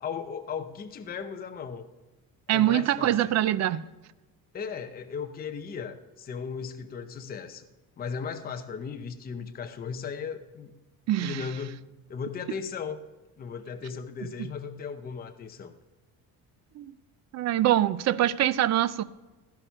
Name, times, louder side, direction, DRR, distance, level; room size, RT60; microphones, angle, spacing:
voice 1, 0.0-1.9 2.5-3.2 4.5-7.7 8.0-10.8 11.2-13.0 13.4-15.7, left 6 dB, 25° left, 0.7 m, -36 dB
voice 2, 2.5-3.8 11.1-11.5 16.8-16.9 17.3-19.0, right 12 dB, 45° right, 0.6 m, -24 dB
16.5 x 11.5 x 5.6 m
cardioid pair, 165°, 39 cm